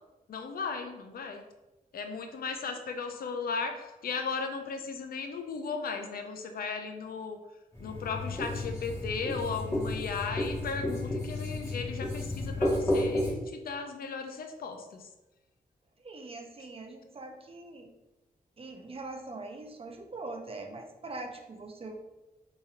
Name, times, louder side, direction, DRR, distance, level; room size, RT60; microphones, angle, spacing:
voice 1, 0.3-1.4 1.9-7.4 7.8-15.1, left 5 dB, 75° left, 6 dB, 0.5 m, -36 dB
Writing, 7.7-13.3, left 1 dB, 20° left, 1.4 m, -32 dB
voice 2, 16.0-17.9 18.6-22.0, right 2 dB, 40° right, 3 dB, 0.5 m, -42 dB
3.9 x 3.0 x 2.5 m, 1.1 s
cardioid pair, 70°, 15 cm